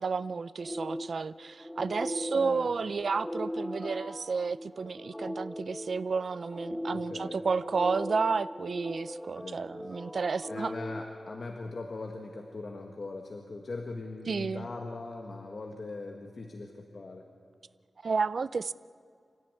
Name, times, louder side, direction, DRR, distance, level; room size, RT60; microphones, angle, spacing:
voice 1, 0.0-10.7 14.3-14.7 18.0-18.7, right 4 dB, 55° right, 16 dB, 0.5 m, -31 dB
sound 1, 0.6-11.9, equal, 5° left, 0.7 m, -39 dB
voice 2, 6.9-7.4 9.4-9.6 10.5-17.3, left 3 dB, 45° left, 3 dB, 1.7 m, -40 dB
27.0 x 14.5 x 9.8 m, 2.4 s
wide cardioid pair, 145°, 0 cm